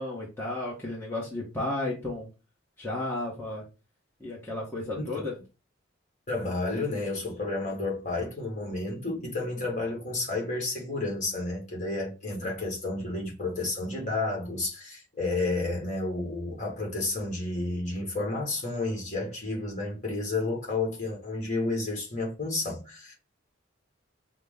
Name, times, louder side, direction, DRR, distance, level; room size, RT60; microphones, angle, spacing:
voice 1, 0.0-2.3 2.8-3.6 4.2-5.3, left 2 dB, 10° left, 1.0 m, -33 dB
voice 2, 6.3-23.1, left 2 dB, 35° left, 1.5 m, -31 dB
5.6 x 2.1 x 3.5 m
head